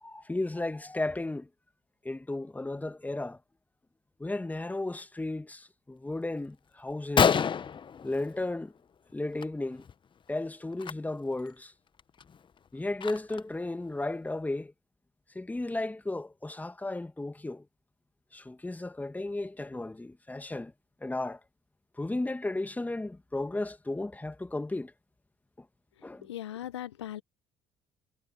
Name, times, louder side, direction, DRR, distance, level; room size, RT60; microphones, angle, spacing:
voice 1, 0.0-1.5 2.0-3.4 4.2-7.4 8.0-8.7 9.1-9.9 10.3-11.7 12.7-14.7 15.4-17.7 18.3-20.7 21.0-21.4 22.0-24.9 25.6-25.7 26.0-26.3, left 2 dB, 10° left, 1.8 m, -34 dB
Gunshot gunfire, 6.5-6.6 6.9-7.0 7.2-8.8 9.1-9.5 9.7-9.9 10.7-10.9 11.5-11.6 12.0-13.6, left 7 dB, 35° left, 1.2 m, -28 dB
voice 2, 26.0-27.2, left 12 dB, 80° left, 1.5 m, -39 dB
figure-of-eight pair, 50°, 14 cm